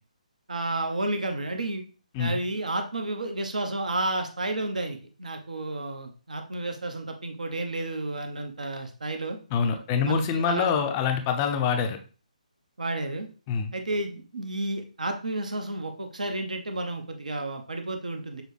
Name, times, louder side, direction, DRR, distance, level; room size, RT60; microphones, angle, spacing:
voice 1, 0.5-1.8 2.2-9.4 10.0-10.8 12.8-13.3 13.7-18.4, right 2 dB, 70° right, 5 dB, 0.9 m, -31 dB
voice 2, 9.5-12.0 13.5-13.7, left 6 dB, 25° left, 6 dB, 0.5 m, -25 dB
6.5 x 2.2 x 3.2 m, 0.37 s
figure-of-eight pair, 140°, 4 cm